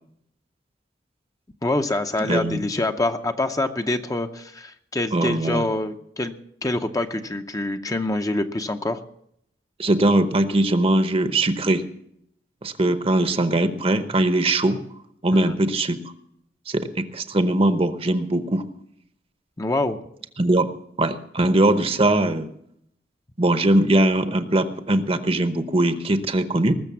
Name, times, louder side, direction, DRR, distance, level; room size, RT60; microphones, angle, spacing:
voice 1, 1.6-6.4 6.6-9.0 15.3-15.4 19.6-20.0, left 2 dB, 20° left, 7 dB, 0.7 m, -25 dB
voice 2, 2.2-2.6 5.1-5.7 9.8-11.8 12.6-14.8 15.2-16.0 16.7-18.7 20.4-20.7 21.0-22.5 23.4-26.7, right 1 dB, 35° right, 10 dB, 0.9 m, -21 dB
19.5 x 6.9 x 7.0 m, 0.72 s
head